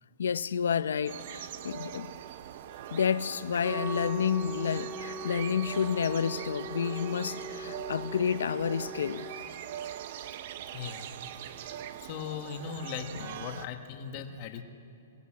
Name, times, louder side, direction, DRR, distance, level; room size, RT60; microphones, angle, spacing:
voice 1, 0.2-2.1 2.9-9.3, left 7 dB, 90° left, 0.7 m, -30 dB
sound 1, 1.1-13.7, right 10 dB, 40° right, 0.7 m, -42 dB
Wind instrument woodwind instrument, 3.6-9.5, equal, 10° right, 0.8 m, -41 dB
voice 2, 10.7-11.1 11.5-14.6, left 7 dB, 25° left, 1.2 m, -39 dB
22.5 x 18.5 x 8.5 m
hypercardioid pair, 175°, 0 cm